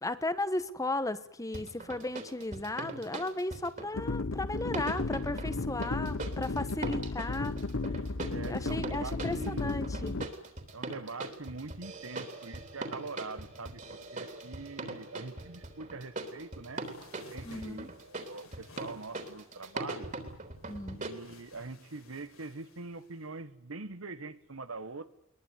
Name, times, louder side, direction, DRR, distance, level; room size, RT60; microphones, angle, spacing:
voice 1, 0.0-7.6 8.5-10.2 17.4-17.9 20.7-21.0, left 2 dB, 15° left, 13 dB, 1.1 m, -35 dB
sound 1, 1.5-3.9 4.7-21.1, right 2 dB, 40° right, 3.5 m, -41 dB
sound 2, 3.9-10.3, left 3 dB, 65° left, 1.0 m, -34 dB
voice 2, 8.3-9.8 10.7-16.8 17.3-20.1 20.9-25.1, right 3 dB, 85° right, 12 dB, 1.5 m, -43 dB
sound 3, 16.7-23.4, left 3 dB, 90° left, 5.3 m, -58 dB
21.5 x 21.5 x 9.5 m, 0.79 s
head